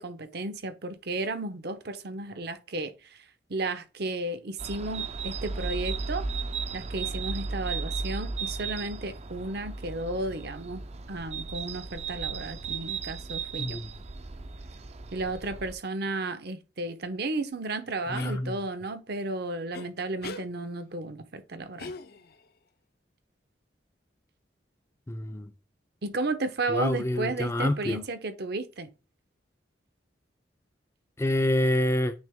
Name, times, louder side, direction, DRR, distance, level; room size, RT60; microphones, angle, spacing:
voice 1, 0.0-3.2 3.5-6.3 6.7-10.8 11.1-13.8 15.1-21.9 26.0-28.9, right 2 dB, 60° right, 0.9 m, -33 dB
sound 1, 4.6-15.7, right 4 dB, 35° right, 0.5 m, -35 dB
sound 2, 18.1-18.4 19.7-19.9 20.2-20.5 21.8-22.4, left 3 dB, 55° left, 0.6 m, -40 dB
voice 2, 18.1-18.6 25.1-25.5 26.7-28.0 31.2-32.1, left 1 dB, 15° left, 0.5 m, -27 dB
8.9 x 3.0 x 3.5 m
head